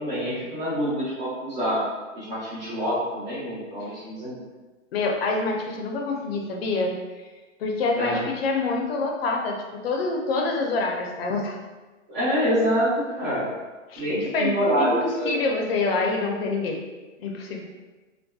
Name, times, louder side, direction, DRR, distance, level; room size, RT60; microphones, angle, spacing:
voice 1, 0.0-1.9 2.1-4.4 8.0-8.2 12.1-13.5 14.0-15.3, equal, 35° right, -10 dB, 0.7 m, -26 dB
voice 2, 4.9-6.9 7.6-9.6 9.8-11.6 13.9-14.1 14.3-14.9 15.2-16.8 17.2-17.6, left 3 dB, 50° left, 1 dB, 0.5 m, -26 dB
2.6 x 2.2 x 2.2 m, 1.2 s
hypercardioid pair, 150°, 39 cm